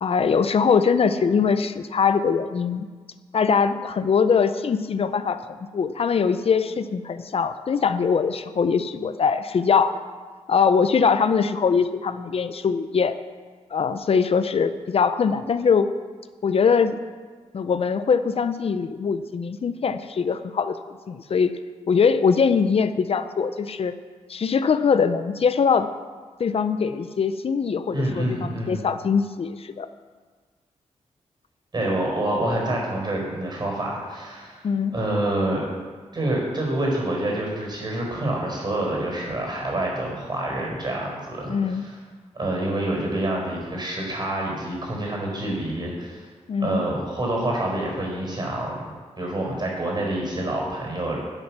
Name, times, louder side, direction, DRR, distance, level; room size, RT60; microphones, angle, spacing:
voice 1, 0.0-2.9 3.3-5.4 5.7-9.9 10.5-13.2 13.7-15.9 16.4-17.0 17.5-20.8 21.1-21.5 21.9-23.9 24.3-25.9 26.4-29.9 34.6-35.0 41.5-41.8 46.5-46.8, left 6 dB, 55° left, 11 dB, 0.6 m, -22 dB
voice 2, 27.9-28.8 31.7-34.6 34.9-35.6 36.1-42.0 42.3-46.2 46.6-51.2, right 1 dB, 35° right, -1 dB, 4.5 m, -27 dB
12.0 x 8.6 x 6.0 m, 1.5 s
wide cardioid pair, 105°, 12 cm